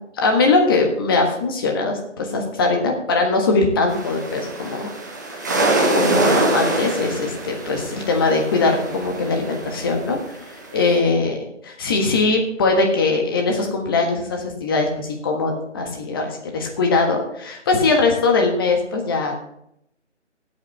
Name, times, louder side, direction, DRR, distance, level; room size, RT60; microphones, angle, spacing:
voice 1, 0.1-4.9 5.3-10.2 10.7-11.4 11.6-19.4, left 3 dB, 20° left, 2 dB, 1.4 m, -21 dB
sound 1, 3.9-11.0, right 2 dB, 15° right, 0.8 m, -24 dB
16.5 x 8.6 x 3.3 m, 0.75 s
figure-of-eight pair, 155°, 36 cm